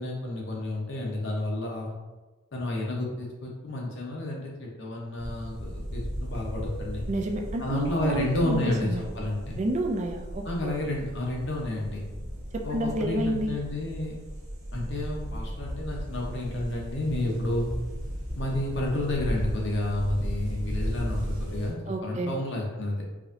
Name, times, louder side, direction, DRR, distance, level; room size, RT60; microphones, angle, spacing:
voice 1, 0.0-1.9 2.5-7.1 7.6-8.9 9.1-9.6 10.4-12.1 12.6-14.1 14.7-17.7 18.4-23.0, left 1 dB, 60° left, -2 dB, 0.9 m, -31 dB
sound 1, 5.2-21.7, equal, 75° right, 1.3 m, -36 dB
voice 2, 7.1-9.0 9.6-10.8 12.5-13.6 21.9-22.3, right 1 dB, 35° right, 3 dB, 0.3 m, -30 dB
4.7 x 2.6 x 2.7 m, 1.2 s
head